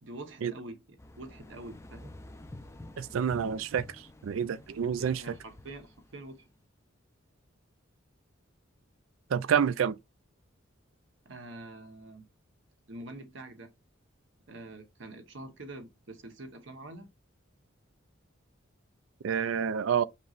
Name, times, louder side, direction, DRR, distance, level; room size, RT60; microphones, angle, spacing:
voice 1, 0.0-2.1 5.0-6.5 11.2-12.3 12.9-13.7 14.5-17.1, right 2 dB, 65° right, 1.0 m, -45 dB
sound 1, 1.0-6.4, left 1 dB, 15° left, 0.4 m, -50 dB
voice 2, 3.0-3.8 4.2-5.2 9.3-10.0 19.2-20.0, right 7 dB, 80° right, 0.4 m, -28 dB
5.4 x 3.0 x 2.5 m
head